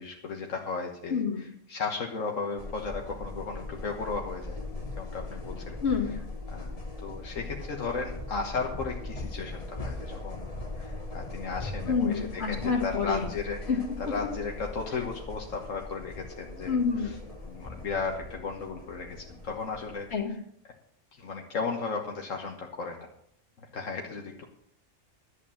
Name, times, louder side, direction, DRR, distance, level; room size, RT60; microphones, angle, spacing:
voice 1, 0.0-1.2 1.7-4.6 4.9-5.8 6.5-13.6 14.1-16.8 17.0-17.1 17.5-20.1 21.2-23.1 23.7-24.5, left 4 dB, 80° left, 1 dB, 1.7 m, -35 dB
voice 2, 1.1-1.5 5.8-6.1 11.9-13.3 13.7-13.8 14.1-14.3 16.7-17.1 20.1-20.4, left 5 dB, 55° left, 2 dB, 2.3 m, -28 dB
sound 1, 2.6-20.2, left 2 dB, 30° left, 1.5 m, -40 dB
11.5 x 8.2 x 7.4 m, 0.68 s
omnidirectional pair, 1.3 m